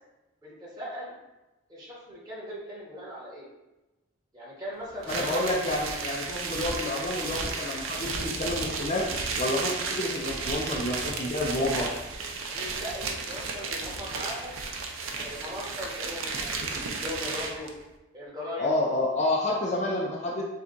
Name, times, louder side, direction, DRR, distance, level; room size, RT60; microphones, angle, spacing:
voice 1, 0.4-1.1 1.7-3.5 4.3-5.4 12.5-14.6 15.2-17.7 18.1-18.7, left 1 dB, 20° right, -6 dB, 1.3 m, -39 dB
sound 1, 5.0-17.7, right 4 dB, 75° right, 0.6 m, -33 dB
voice 2, 5.1-9.1 9.4-11.9 18.6-20.4, left 1 dB, 35° left, -2 dB, 0.5 m, -29 dB
7.1 x 2.4 x 2.6 m, 1.0 s
head